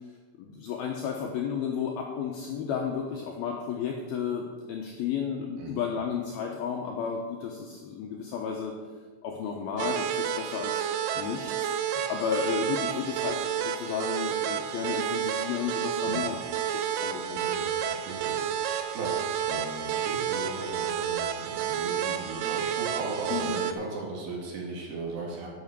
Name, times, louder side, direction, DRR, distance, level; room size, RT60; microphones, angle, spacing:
voice 1, 0.4-8.7 9.2-10.9 11.1-16.3 16.7-17.5 23.3-23.6, left 7 dB, 90° left, 0 dB, 2.1 m, -33 dB
sound 1, 9.8-23.7, right 9 dB, 80° right, 2.7 m, -30 dB
voice 2, 16.0-16.3 17.3-25.5, right 3 dB, 60° right, -2 dB, 4.2 m, -37 dB
11.0 x 8.5 x 6.8 m, 1.5 s
omnidirectional pair, 5.7 m